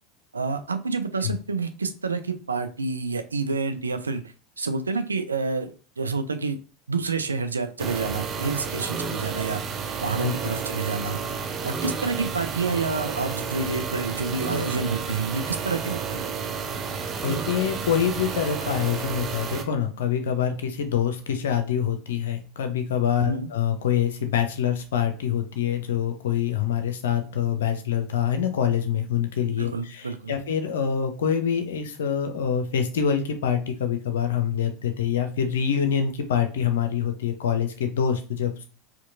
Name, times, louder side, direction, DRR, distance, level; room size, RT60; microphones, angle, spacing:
voice 1, 0.3-4.2 4.6-6.6 6.9-9.6 10.0-11.2 11.6-16.3 23.2-23.5 29.6-30.3, right 4 dB, 85° right, 9 dB, 0.4 m, -28 dB
sound 1, 7.8-19.6, right 6 dB, 35° right, 0.6 m, -31 dB
voice 2, 17.2-38.6, left 8 dB, 70° left, 6 dB, 0.7 m, -25 dB
4.3 x 2.8 x 2.5 m, 0.38 s
figure-of-eight pair, 75°, 0 cm